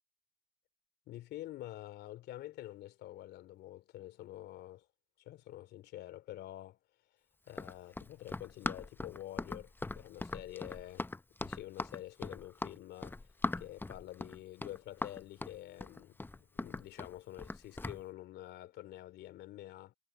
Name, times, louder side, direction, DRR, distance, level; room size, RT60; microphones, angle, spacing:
voice 1, 1.1-4.9 5.2-6.8 7.4-11.1 11.4-13.3 13.6-19.9, left 14 dB, 60° left, 3.0 m, -48 dB
Run, 7.5-18.0, left 2 dB, 10° left, 0.8 m, -40 dB
hypercardioid pair, 70°, 20 cm